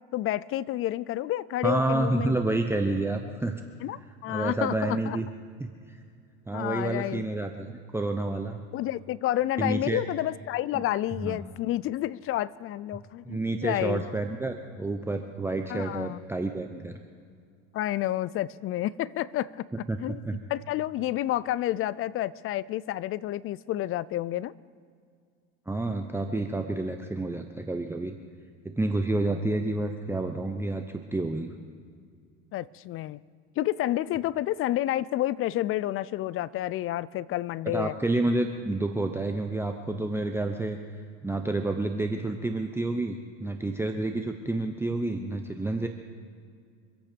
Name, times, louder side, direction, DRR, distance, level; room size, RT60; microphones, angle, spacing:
voice 1, 0.1-2.4 3.8-5.2 6.5-7.2 8.7-14.0 15.7-16.2 17.7-19.5 19.8-20.2 20.5-24.5 32.5-33.2 33.6-38.0, left 14 dB, 40° left, 21 dB, 0.4 m, -30 dB
voice 2, 1.6-3.6 4.3-5.3 5.6-6.0 6.5-8.6 9.6-10.0 10.7-10.8 11.2-11.5 13.3-17.0 19.9-20.4 25.7-28.1 28.6-31.5 37.7-40.8 41.2-45.9, right 2 dB, 5° right, 4 dB, 0.9 m, -29 dB
25.5 x 8.6 x 5.2 m, 2.1 s
supercardioid pair, 95°, 35 cm